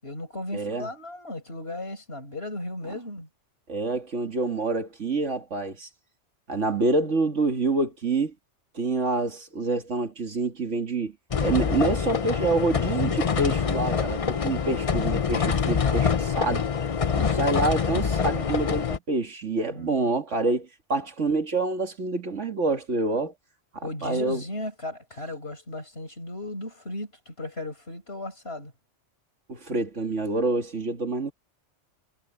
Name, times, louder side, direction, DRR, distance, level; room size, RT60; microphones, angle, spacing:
voice 1, 0.0-3.3 19.6-20.2 23.8-28.7, left 1 dB, 55° left, 6.7 m, -36 dB
voice 2, 0.5-0.9 3.7-5.9 6.5-8.3 8.7-11.1 11.4-16.7 17.2-23.3 23.7-24.4 29.5-31.3, right 3 dB, 70° right, 2.5 m, -27 dB
sound 1, 11.3-19.0, left 6 dB, 35° left, 0.6 m, -25 dB
omnidirectional pair, 1.3 m